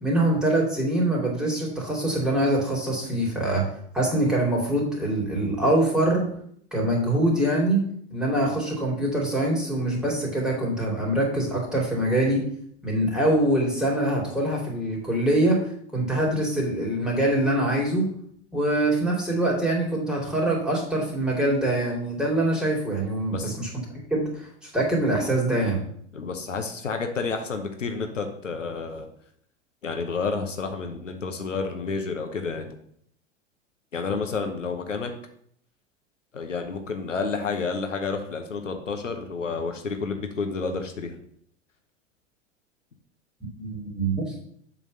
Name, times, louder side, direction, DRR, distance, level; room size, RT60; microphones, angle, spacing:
voice 1, 0.0-3.7 3.9-6.3 6.7-7.8 8.1-12.4 12.8-15.6 15.9-18.1 18.5-23.7 24.1-24.3 24.6-25.8 43.6-44.3, right 1 dB, ahead, -3 dB, 3.0 m, -24 dB
voice 2, 26.1-29.1 29.8-32.8 33.9-35.1 36.3-41.2, left 4 dB, 80° left, 5 dB, 1.1 m, -30 dB
7.6 x 3.9 x 6.5 m, 0.66 s
figure-of-eight pair, 90°, 37 cm